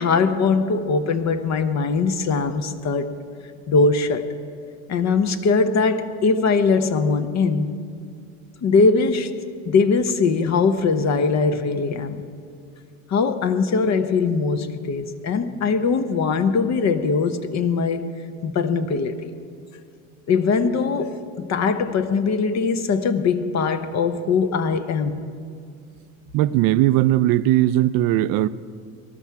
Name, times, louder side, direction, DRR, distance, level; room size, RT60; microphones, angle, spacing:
voice 1, 0.0-3.1 3.7-4.3 4.9-7.7 8.6-9.4 9.7-12.2 13.1-18.1 18.4-19.3 20.3-25.3, left 4 dB, 40° left, 10 dB, 0.9 m, -21 dB
voice 2, 26.3-28.5, right 14 dB, 55° right, 17 dB, 0.5 m, -18 dB
20.0 x 12.0 x 4.7 m, 2.2 s
hypercardioid pair, 90°, 42 cm